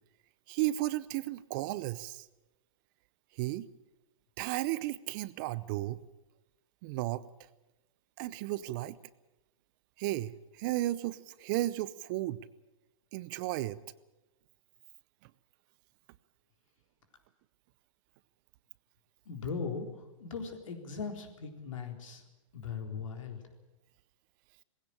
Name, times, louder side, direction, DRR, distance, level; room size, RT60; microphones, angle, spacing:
voice 1, 0.5-2.3 3.3-3.7 4.4-6.0 6.8-7.2 8.2-9.0 10.0-12.4 13.1-13.8 15.2-15.3, right 16 dB, 40° right, 18 dB, 0.7 m, -34 dB
voice 2, 19.3-22.2 22.5-23.4, left 5 dB, 70° left, 4 dB, 3.9 m, -39 dB
20.0 x 16.5 x 8.7 m, 1.0 s
hypercardioid pair, 130°, 17 cm